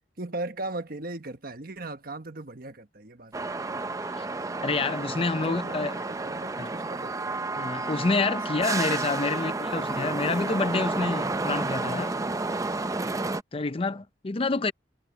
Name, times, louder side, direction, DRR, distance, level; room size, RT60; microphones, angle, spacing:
voice 1, 0.2-3.5 5.1-7.2 8.6-10.0 13.5-14.0, right 2 dB, 55° right, 1.4 m, -39 dB
sound 1, 3.3-13.4, right 3 dB, 20° right, 0.6 m, -31 dB
voice 2, 4.6-5.9 6.6-6.7 7.6-12.2 13.5-14.7, left 3 dB, 30° left, 0.5 m, -28 dB
head